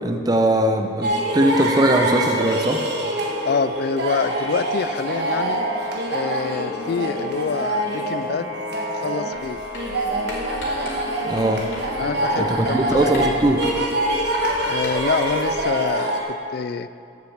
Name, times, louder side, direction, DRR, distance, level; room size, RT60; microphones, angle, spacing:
voice 1, 0.0-2.8 11.2-11.7 12.4-13.7, right 1 dB, 20° right, 5 dB, 0.6 m, -20 dB
sound 1, 1.0-16.2, right 1 dB, 55° right, 1.5 m, -25 dB
voice 2, 3.4-5.6 6.1-8.5 8.9-9.6 11.9-13.3 14.7-16.9, left 5 dB, 55° left, 14 dB, 0.3 m, -26 dB
Writing, 9.3-15.7, left 1 dB, 85° left, 2.9 m, -37 dB
9.0 x 7.3 x 7.2 m, 2.6 s
head